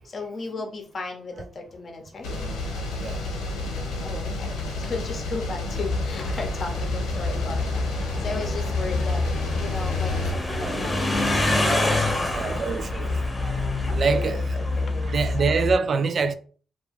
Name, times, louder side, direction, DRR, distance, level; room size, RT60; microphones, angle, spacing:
voice 1, 0.0-2.3 4.0-9.3 9.6-13.2 13.9-15.1, left 3 dB, 50° left, 0.7 m, -36 dB
sound 1, 2.2-10.3, left 2 dB, 85° left, 0.6 m, -31 dB
sound 2, 5.7-15.8, left 2 dB, 25° left, 0.9 m, -26 dB
voice 2, 12.3-13.2 13.9-14.4 15.1-16.3, right 5 dB, 55° right, 0.3 m, -24 dB
2.4 x 2.3 x 3.1 m
supercardioid pair, 55°, 0 cm